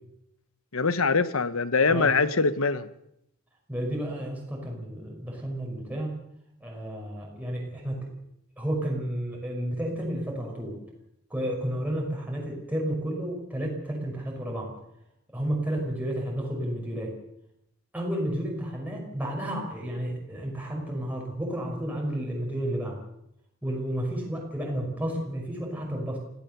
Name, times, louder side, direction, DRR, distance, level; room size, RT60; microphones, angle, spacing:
voice 1, 0.7-2.9, left 4 dB, 75° left, 13 dB, 1.2 m, -23 dB
voice 2, 3.7-6.1 6.6-8.0 8.6-10.8 11.3-14.7 15.3-17.1 17.9-23.0 23.6-26.2, right 1 dB, 5° right, -2 dB, 5.6 m, -31 dB
25.5 x 16.5 x 6.9 m, 0.79 s
head